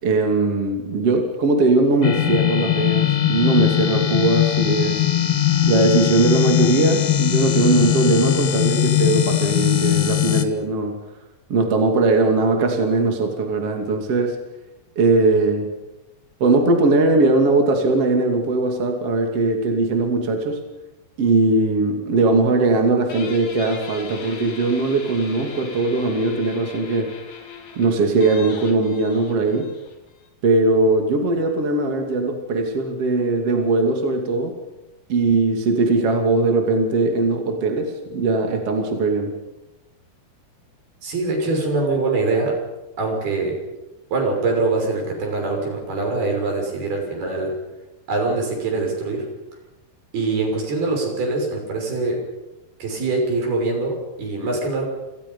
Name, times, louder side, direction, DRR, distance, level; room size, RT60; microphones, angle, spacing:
voice 1, 0.0-5.0 5.6-11.0 11.5-14.4 15.0-15.7 16.4-20.6 21.2-27.1 27.8-29.7 30.4-34.5 35.1-39.4, right 3 dB, 40° right, 3 dB, 3.2 m, -20 dB
sound 1, 2.0-10.4, left 12 dB, 50° left, 1.9 m, -20 dB
Guitar, 23.1-30.3, left 5 dB, 80° left, 5.6 m, -39 dB
voice 2, 41.0-42.6 43.0-43.6 44.1-47.5 48.1-49.2 50.1-52.2 52.8-54.9, right 3 dB, 65° right, 2 dB, 8.0 m, -23 dB
29.0 x 27.5 x 5.5 m, 1.0 s
omnidirectional pair, 4.8 m